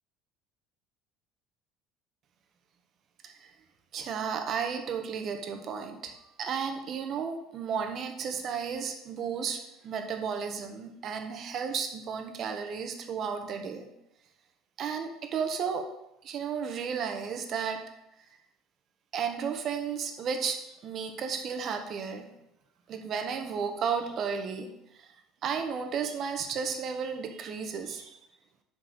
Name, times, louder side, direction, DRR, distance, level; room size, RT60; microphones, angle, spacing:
voice 1, 3.9-6.1 6.4-9.6 9.8-13.9 14.8-15.8 16.2-17.8 19.1-22.3 22.9-24.7 25.0-25.1 25.4-28.2, right 6 dB, 50° right, 5 dB, 1.4 m, -33 dB
7.9 x 4.6 x 6.6 m, 0.86 s
supercardioid pair, 95°, 0 cm